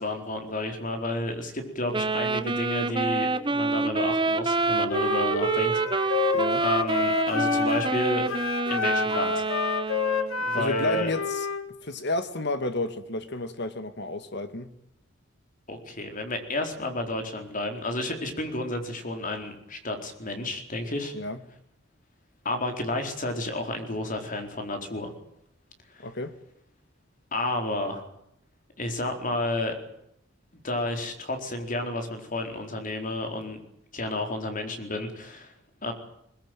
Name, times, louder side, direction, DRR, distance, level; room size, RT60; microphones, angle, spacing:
voice 1, 0.0-8.3 8.7-9.4 10.4-11.1 15.7-21.1 22.4-25.1 25.9-26.1 27.3-28.0 28.8-29.7 30.6-33.6 33.9-35.5 35.8-35.9, left 1 dB, 40° left, 4.4 m, -31 dB
Wind instrument woodwind instrument, 1.9-10.4, right 3 dB, 25° right, 1.1 m, -27 dB
Wind instrument woodwind instrument 2, 4.9-8.0 8.3-11.6, left 4 dB, 85° left, 2.1 m, -29 dB
voice 2, 10.5-11.5 11.8-14.7 21.1-21.4 26.0-26.3, left 2 dB, 55° left, 2.0 m, -31 dB
22.0 x 20.5 x 9.2 m
head